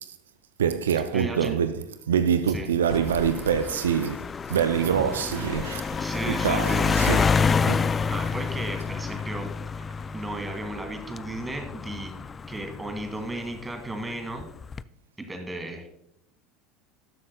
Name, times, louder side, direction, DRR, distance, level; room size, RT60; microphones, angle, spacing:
voice 1, 0.6-7.4 7.6-8.0, right 8 dB, 85° right, 0.3 m, -25 dB
voice 2, 1.1-1.6 2.5-2.7 6.0-7.4 8.1-9.9 10.1-12.2 12.5-14.5 15.3-15.9, right 1 dB, 15° right, 2.1 m, -35 dB
sound 1, 2.9-13.6 14.4-14.8, left 5 dB, 25° left, 0.3 m, -28 dB
12.5 x 7.3 x 2.2 m
hypercardioid pair, 75°, 0 cm